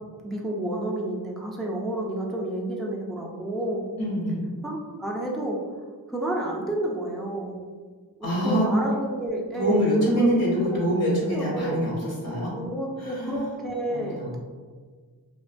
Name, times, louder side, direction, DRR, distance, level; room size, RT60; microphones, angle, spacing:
voice 1, 0.2-3.9 4.6-5.6 6.1-7.6 8.2-9.9 10.2-10.3 10.7-10.8 11.3-11.8 12.5-14.4, right 1 dB, ahead, -2 dB, 0.4 m, -30 dB
voice 2, 4.0-4.4 8.2-8.7 9.6-11.9 12.2-12.5 13.0-13.5 13.9-14.3, equal, 60° left, -5 dB, 0.9 m, -24 dB
2.4 x 2.2 x 2.5 m, 1.5 s
cardioid pair, 45°, 42 cm